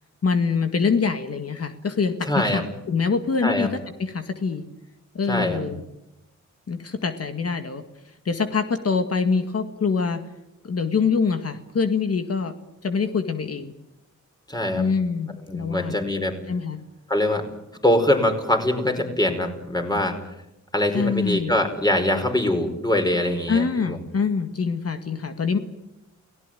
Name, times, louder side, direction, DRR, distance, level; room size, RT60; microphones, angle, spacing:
voice 1, 0.2-3.7 4.0-4.6 5.1-5.8 6.7-7.8 8.3-10.2 10.6-12.5 12.8-13.7 14.7-16.0 16.5-16.8 20.9-21.6 23.5-25.6, left 5 dB, 50° left, 8 dB, 2.0 m, -24 dB
voice 2, 2.2-2.6 3.4-3.7 5.3-5.6 14.5-14.8 15.5-16.4 17.1-17.5 17.8-20.2 20.7-24.0, left 1 dB, 15° left, 5 dB, 5.0 m, -23 dB
29.5 x 18.5 x 9.3 m, 0.90 s
wide cardioid pair, 125°, 31 cm